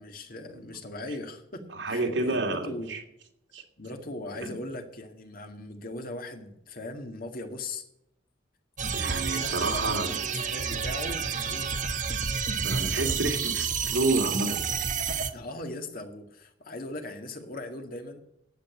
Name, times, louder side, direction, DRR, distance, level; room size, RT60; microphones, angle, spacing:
voice 1, 0.0-2.9 3.8-7.8 9.3-10.2 10.5-11.7 15.3-18.2, left 2 dB, 50° left, 5 dB, 2.1 m, -39 dB
voice 2, 1.7-3.0 3.5-3.6 4.4-4.5 8.9-10.1 12.6-14.7, right 2 dB, 80° right, 3 dB, 2.6 m, -29 dB
sound 1, 8.8-15.3, right 6 dB, 45° right, 1.2 m, -30 dB
11.5 x 8.7 x 8.4 m, 0.79 s
head